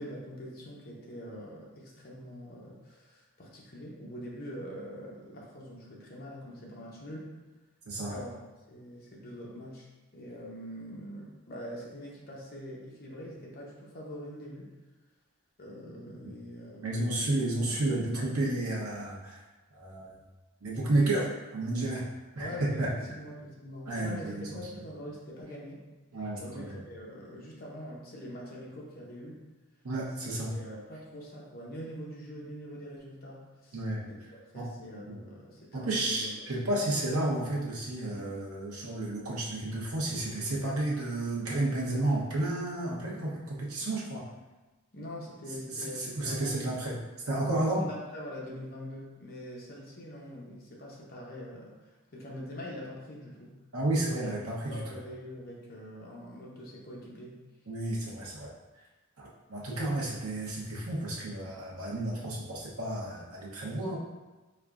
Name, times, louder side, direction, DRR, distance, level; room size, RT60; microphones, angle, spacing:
voice 1, 0.0-7.4 8.1-8.4 8.7-9.9 10.1-14.7 15.6-17.3 22.3-25.8 26.4-29.4 30.2-33.8 34.1-34.2 34.5-36.6 44.9-46.5 47.6-53.6 54.2-54.3 54.7-57.4, equal, 45° left, -3 dB, 0.8 m, -44 dB
voice 2, 16.8-19.4 19.7-20.2 20.6-21.3 21.5-22.0 22.3-22.9 23.9-24.6 26.1-26.8 29.8-30.5 33.7-34.0 34.5-34.7 35.0-35.2 35.7-44.2 45.7-47.9 53.7-54.8 57.7-58.5 59.2-64.0, right 2 dB, 85° right, -4 dB, 0.9 m, -31 dB
4.9 x 2.3 x 2.4 m, 1.2 s
head